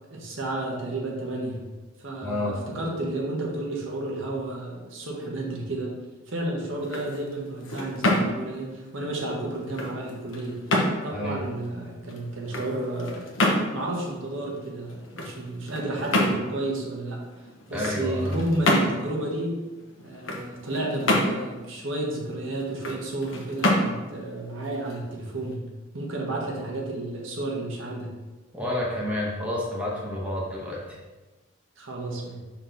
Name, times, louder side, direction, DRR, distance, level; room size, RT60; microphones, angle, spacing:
voice 1, 0.1-1.6 2.0-5.9 6.3-10.6 11.0-13.2 13.7-19.5 20.0-25.6 25.9-28.1 31.8-32.4, right 2 dB, 75° right, -2 dB, 1.4 m, -31 dB
voice 2, 2.2-2.6 11.1-11.4 17.7-18.4 28.5-31.0, left 1 dB, 5° right, -5 dB, 1.2 m, -29 dB
sound 1, 6.7-25.5, left 1 dB, 75° left, 1.1 m, -29 dB
6.1 x 4.3 x 4.0 m, 1.2 s
head